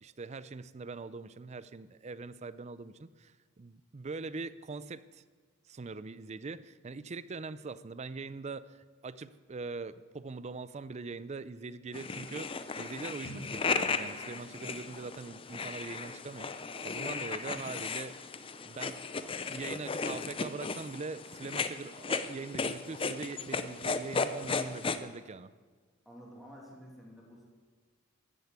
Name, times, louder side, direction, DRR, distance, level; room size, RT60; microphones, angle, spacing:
voice 1, 0.0-5.2 5.7-12.5 12.8-16.5 16.8-18.2 18.6-19.1 19.5-25.5, right 4 dB, 30° right, 16 dB, 0.4 m, -42 dB
sound 1, 11.9-25.0, left 4 dB, 25° left, 0.6 m, -36 dB
Drum, 13.2-15.9, right 1 dB, 75° left, 1.9 m, -50 dB
voice 2, 19.2-19.7 26.0-27.5, equal, ahead, -3 dB, 2.6 m, -52 dB
14.0 x 8.0 x 8.3 m, 1.5 s
head